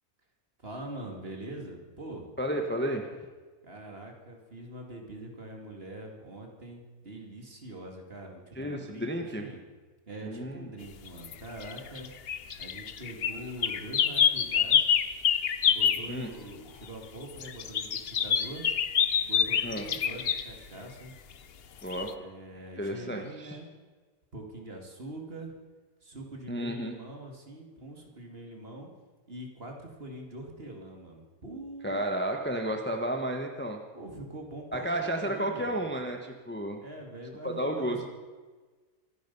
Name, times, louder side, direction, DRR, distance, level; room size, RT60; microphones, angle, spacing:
voice 1, 0.6-2.3 3.6-9.6 10.1-12.1 12.6-14.9 15.6-18.7 19.2-21.1 22.1-23.7 24.3-25.5 26.0-28.9 29.3-32.0 33.9-35.8 36.8-38.1, right 1 dB, 40° right, 2 dB, 2.6 m, -43 dB
voice 2, 2.4-3.1 8.6-9.4 10.2-10.7 16.1-16.3 19.6-19.9 21.8-22.1 22.8-23.6 26.5-26.9 31.8-33.8 34.7-36.8 37.4-38.1, right 1 dB, 10° left, 3 dB, 1.1 m, -32 dB
sound 1, 11.1-11.3 11.6-16.1 17.4-20.5 21.9-22.1, left 8 dB, 50° left, 0.8 m, -26 dB
25.0 x 10.5 x 5.5 m, 1.4 s
omnidirectional pair, 1.6 m